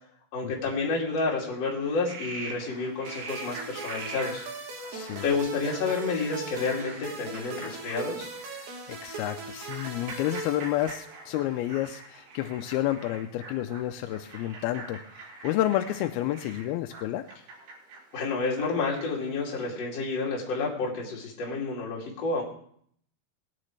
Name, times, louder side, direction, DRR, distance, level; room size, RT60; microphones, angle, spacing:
voice 1, 0.3-4.4 5.2-8.3 18.1-22.4, left 4 dB, 40° left, -4 dB, 3.5 m, -30 dB
Frog, 1.8-19.3, right 3 dB, 75° right, 4.6 m, -44 dB
sound 1, 3.1-11.3, right 3 dB, 55° right, 2.9 m, -40 dB
voice 2, 4.9-5.2 8.9-17.2, left 13 dB, 80° left, 6 dB, 2.4 m, -30 dB
21.0 x 9.7 x 3.3 m, 0.63 s
omnidirectional pair, 4.8 m